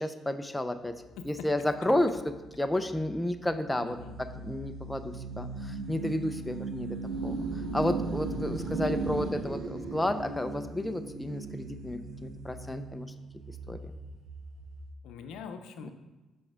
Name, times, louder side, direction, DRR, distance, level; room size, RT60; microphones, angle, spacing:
voice 1, 0.0-7.4 7.7-13.1 13.7-13.9, left 1 dB, 10° left, 9 dB, 0.5 m, -32 dB
sound 1, 0.8-14.9, right 3 dB, 65° right, 0.9 m, -38 dB
voice 2, 1.2-1.5 3.8-4.2 8.8-9.3 15.0-15.9, left 6 dB, 85° left, 7 dB, 0.6 m, -44 dB
7.7 x 5.6 x 3.6 m, 1.1 s
cardioid pair, 90°, 0 cm